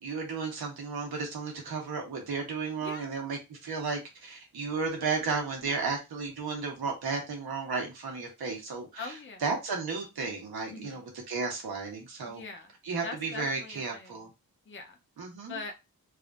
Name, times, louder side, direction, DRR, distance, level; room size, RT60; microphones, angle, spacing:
voice 1, 0.0-9.1 9.4-12.4 12.8-14.3 15.2-15.6, right 4 dB, 85° right, 1 dB, 1.2 m, -34 dB
voice 2, 9.0-9.4 10.7-11.1 12.3-12.7 13.0-14.2 14.7-15.0 15.5-15.8, left 4 dB, 35° left, 3 dB, 0.6 m, -42 dB
3.4 x 2.5 x 2.4 m, 0.24 s
wide cardioid pair, 120°, 37 cm